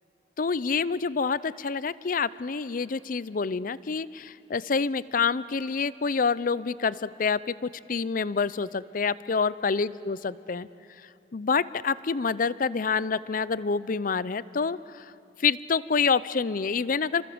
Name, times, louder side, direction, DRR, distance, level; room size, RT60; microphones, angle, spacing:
voice 1, 0.4-10.7 11.3-15.1 15.4-17.2, left 5 dB, 50° left, 17 dB, 0.5 m, -27 dB
28.0 x 26.0 x 7.8 m, 2.9 s
head